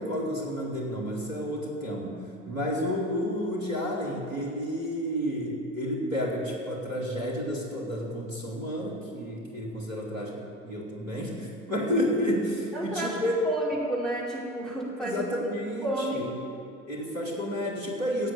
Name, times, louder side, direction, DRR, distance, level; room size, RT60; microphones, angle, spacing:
voice 1, 0.0-13.3 15.0-16.4 16.9-18.3, equal, 85° right, -1 dB, 3.2 m, -31 dB
voice 2, 12.7-13.2 13.4-15.2 15.8-16.3, right 1 dB, ahead, -5 dB, 5.0 m, -31 dB
15.5 x 8.3 x 10.0 m, 2.3 s
figure-of-eight pair, 60°, 39 cm